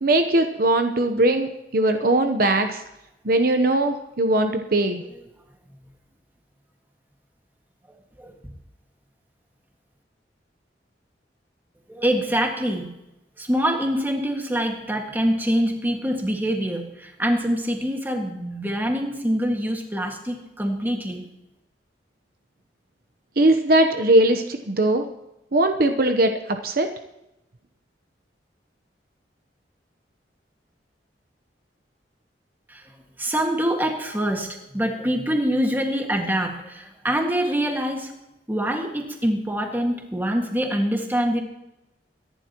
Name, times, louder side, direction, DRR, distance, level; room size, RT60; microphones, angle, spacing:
voice 1, 0.0-2.8 3.2-5.0 23.4-25.0 25.5-26.3 26.6-26.9, right 1 dB, 55° right, 6 dB, 0.9 m, -20 dB
voice 2, 11.9-12.9 13.4-21.2 32.7-32.9 33.2-38.1 38.5-41.4, equal, 10° right, 2 dB, 1.9 m, -25 dB
23.5 x 11.0 x 3.0 m, 0.92 s
head